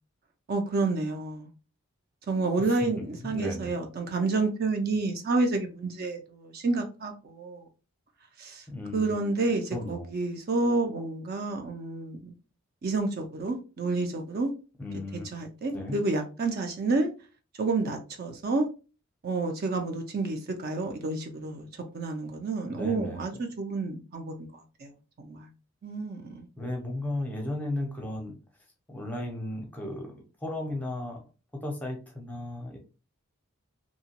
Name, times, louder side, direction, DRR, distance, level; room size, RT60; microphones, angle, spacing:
voice 1, 0.5-1.5 2.3-7.7 8.4-8.6 8.9-12.3 12.8-14.5 15.3-17.1 17.6-18.7 19.2-21.7 21.9-24.9 25.2-25.5 25.8-26.5, right 3 dB, 45° right, 0.4 m, -29 dB
voice 2, 3.2-3.7 8.7-9.1 9.7-10.1 14.8-15.3 15.7-16.0 22.7-23.2 26.6-28.4 28.9-31.2 31.6-32.8, left 1 dB, 5° left, 0.6 m, -35 dB
2.8 x 2.2 x 2.8 m
head